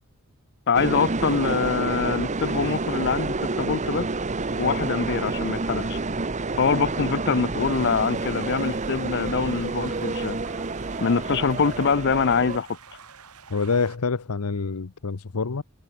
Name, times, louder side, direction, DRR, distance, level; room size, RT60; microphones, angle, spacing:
voice 1, 0.7-4.1 4.6-6.0 6.6-10.4 11.0-12.8, left 5 dB, 50° left, 0.7 m, -24 dB
sound 1, 0.7-12.6, right 3 dB, 30° right, 1.0 m, -29 dB
sound 2, 7.6-14.0, right 6 dB, 85° right, 2.4 m, -47 dB
voice 2, 13.5-15.6, left 4 dB, 85° left, 0.8 m, -26 dB
head